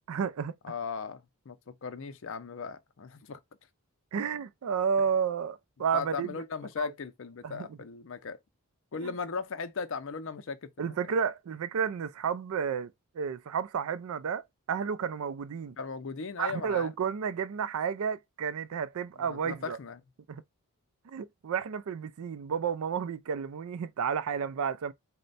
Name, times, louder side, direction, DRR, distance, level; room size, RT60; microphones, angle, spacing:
voice 1, 0.1-0.5 4.1-6.4 6.8-6.9 7.4-7.7 9.0-9.1 10.8-15.8 16.4-19.8 20.3-20.4 21.1-24.9, right 7 dB, 75° right, 0.4 m, -31 dB
voice 2, 0.6-3.4 5.9-8.4 8.9-11.0 15.8-16.9 19.2-20.0, left 5 dB, 60° left, 0.5 m, -37 dB
4.3 x 2.1 x 3.9 m
head